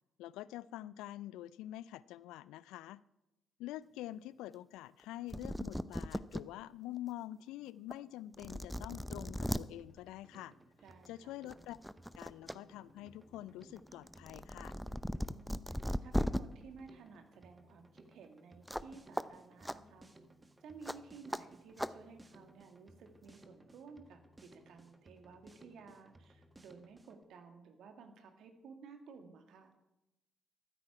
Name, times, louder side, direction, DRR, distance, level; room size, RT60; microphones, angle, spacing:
voice 1, 0.2-3.0 3.6-10.5 11.1-11.8 12.1-14.8, left 14 dB, 75° left, 20 dB, 0.4 m, -46 dB
sound 1, 5.0-5.1 5.3-6.4 7.0-7.1 7.9-8.0 8.3-9.6 10.9-11.1 11.5-12.6 12.9-16.4 18.7-18.9 19.2-19.3 19.6-19.8 20.8-21.0 21.3-21.4 21.8-21.9, equal, ahead, 0.6 m, -37 dB
Drum kit, 9.8-27.2, right 1 dB, 25° right, 1.5 m, -62 dB
voice 2, 10.8-11.3 15.1-20.1 20.6-29.7, right 5 dB, 65° right, 6 dB, 1.9 m, -55 dB
14.0 x 13.0 x 4.8 m, 0.93 s
hypercardioid pair, 40°, 0 cm